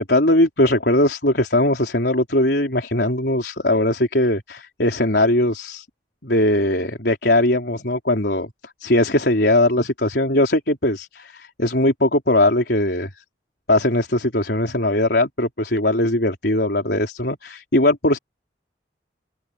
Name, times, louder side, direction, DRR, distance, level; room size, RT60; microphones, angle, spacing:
voice 1, 0.0-5.9 6.2-8.5 8.8-13.1 13.7-18.2, left 1 dB, 70° left, 4.1 m, -20 dB
open air
head